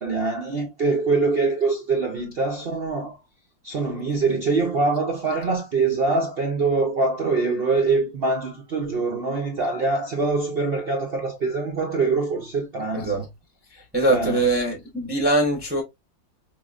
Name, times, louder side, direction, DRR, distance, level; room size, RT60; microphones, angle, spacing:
voice 1, 0.0-3.2 3.6-13.3 14.1-14.5, right 3 dB, 75° right, 0.5 m, -24 dB
voice 2, 13.9-15.8, right 2 dB, 10° right, 0.6 m, -22 dB
4.6 x 3.0 x 2.4 m
omnidirectional pair, 2.0 m